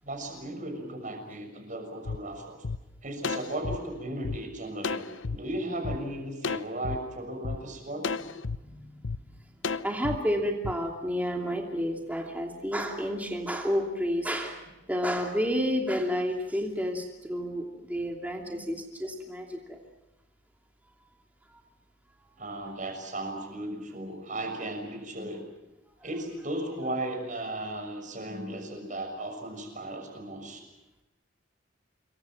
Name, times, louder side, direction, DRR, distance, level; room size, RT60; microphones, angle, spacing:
voice 1, 0.0-2.6 3.0-5.0 5.3-8.1 18.5-18.7 22.4-25.4 26.0-30.6, right 1 dB, 40° right, 4 dB, 6.4 m, -36 dB
sound 1, 2.0-2.2 2.6-2.8 3.2-4.4 4.8-5.4 5.8-6.0 6.4-7.0 7.4-7.6 8.0-8.6 9.0-9.2 9.6-10.2 10.6-10.7, left 4 dB, 80° left, 0.9 m, -32 dB
voice 2, 8.6-8.9 9.8-14.6 14.9-19.8, equal, 10° right, 1 dB, 2.8 m, -30 dB
27.0 x 23.5 x 7.3 m, 0.98 s
head